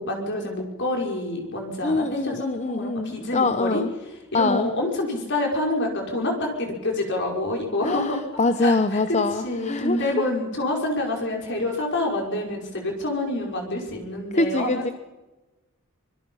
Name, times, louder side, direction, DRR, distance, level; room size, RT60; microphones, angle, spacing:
voice 1, 0.0-3.8 4.3-8.2 8.6-14.9, left 1 dB, 55° left, 1 dB, 5.4 m, -27 dB
voice 2, 1.8-3.9 4.3-4.7 7.8-10.1 14.4-14.9, left 3 dB, 30° left, 10 dB, 0.8 m, -24 dB
25.0 x 21.5 x 5.6 m, 1.1 s
head